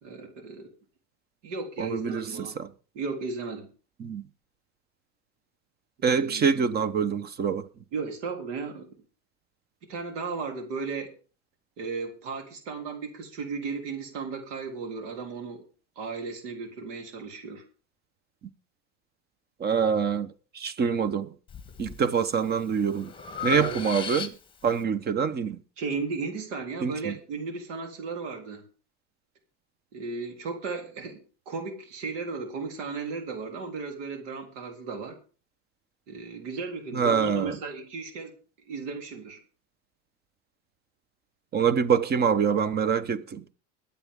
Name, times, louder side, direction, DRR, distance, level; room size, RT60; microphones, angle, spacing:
voice 1, 0.0-0.7 1.4-2.6 2.9-3.7 6.1-6.7 7.9-8.9 9.9-11.1 11.8-15.6 16.0-17.6 23.5-24.0 25.8-28.6 29.9-35.2 36.1-38.3 38.7-39.4, right 4 dB, 80° right, 3.8 m, -35 dB
voice 2, 1.8-2.7 4.0-4.2 6.0-7.6 19.6-20.3 20.5-21.3 21.8-23.1 23.4-24.3 24.6-25.6 26.8-27.1 36.9-37.6 41.5-43.4, right 6 dB, 25° right, 1.0 m, -25 dB
Breathing, 21.5-22.0 22.5-24.7, left 7 dB, 15° left, 1.6 m, -35 dB
22.0 x 8.6 x 3.7 m
supercardioid pair, 140°, 36 cm